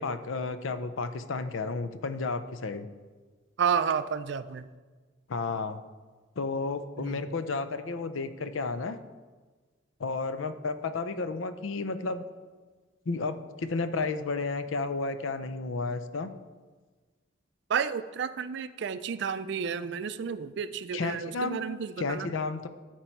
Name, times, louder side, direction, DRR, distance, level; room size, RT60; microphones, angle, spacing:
voice 1, 0.0-2.9 5.3-5.8 6.4-9.0 10.0-12.2 13.1-16.3 20.9-21.6 22.0-22.7, left 3 dB, 80° left, 11 dB, 0.6 m, -32 dB
voice 2, 3.6-4.7 7.0-7.3 17.7-22.3, right 7 dB, 60° right, 13 dB, 0.4 m, -31 dB
13.0 x 4.5 x 4.5 m, 1.4 s
head